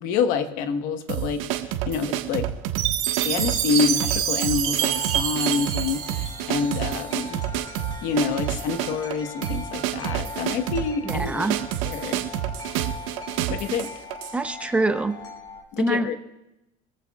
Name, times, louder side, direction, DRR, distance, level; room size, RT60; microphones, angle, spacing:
voice 1, 0.0-2.5 3.2-7.4 8.0-11.5 11.8-12.2 13.5-13.9 15.7-16.2, left 6 dB, 55° left, 8 dB, 1.3 m, -27 dB
sound 1, 1.1-14.4, right 12 dB, 80° right, 1.3 m, -29 dB
Chime, 2.8-7.0, right 11 dB, 60° right, 2.6 m, -27 dB
Wind chime, 4.8-15.6, left 3 dB, 25° left, 3.2 m, -40 dB
voice 2, 11.1-11.6 14.3-15.2 15.8-16.2, right 2 dB, 5° right, 8 dB, 0.7 m, -24 dB
25.0 x 15.0 x 2.4 m, 0.92 s
cardioid pair, 170°, 17 cm